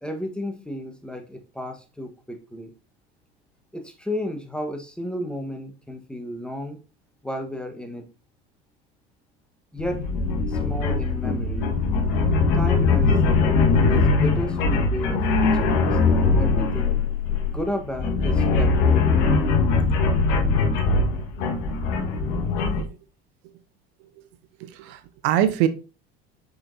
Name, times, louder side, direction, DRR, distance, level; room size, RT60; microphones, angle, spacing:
voice 1, 0.0-2.7 3.7-6.8 7.2-8.1 9.7-10.1 10.5-11.7 12.5-13.2 13.9-17.0 17.4-19.3, equal, 5° left, 1.3 m, -33 dB
sound 1, 9.8-22.8, left 4 dB, 70° left, 1.5 m, -21 dB
voice 2, 24.6-25.7, right 11 dB, 75° right, 0.9 m, -24 dB
6.9 x 5.3 x 2.7 m
supercardioid pair, 90°, 33 cm